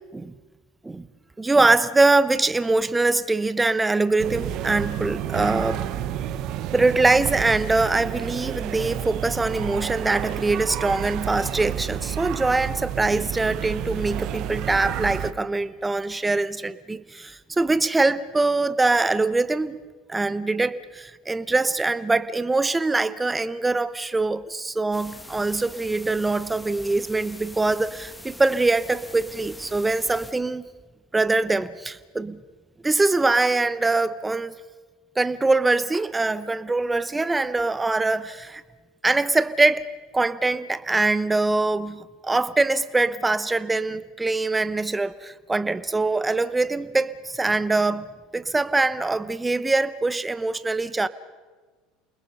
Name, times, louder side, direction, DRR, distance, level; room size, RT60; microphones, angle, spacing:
voice 1, 1.4-5.8 6.7-19.8 20.1-30.7 31.1-32.4 32.8-34.5 35.2-38.6 39.0-39.9 40.1-48.1 48.3-51.1, right 3 dB, 15° right, 0.9 m, -23 dB
sound 1, 4.2-15.3, right 11 dB, 60° right, 1.0 m, -30 dB
sound 2, 24.9-30.3, left 1 dB, 10° left, 1.4 m, -43 dB
28.5 x 20.5 x 5.5 m
hypercardioid pair, 90°, 0 cm